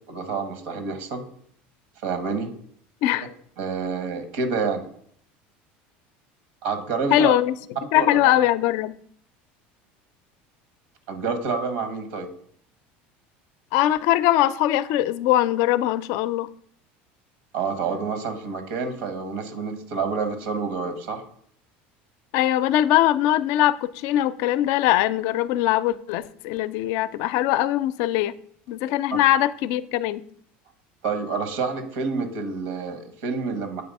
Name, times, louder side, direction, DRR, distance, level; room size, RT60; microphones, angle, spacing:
voice 1, 0.1-1.2 2.0-2.5 3.6-4.8 6.6-7.3 7.9-8.3 11.1-12.3 17.5-21.2 29.1-29.2 31.0-33.8, right 5 dB, 80° right, 9 dB, 1.3 m, -28 dB
voice 2, 7.1-7.5 7.9-8.9 13.7-16.5 22.3-28.3 28.7-30.2, left 13 dB, 65° left, 15 dB, 0.4 m, -21 dB
7.7 x 3.4 x 5.3 m, 0.63 s
supercardioid pair, 115°, 5 cm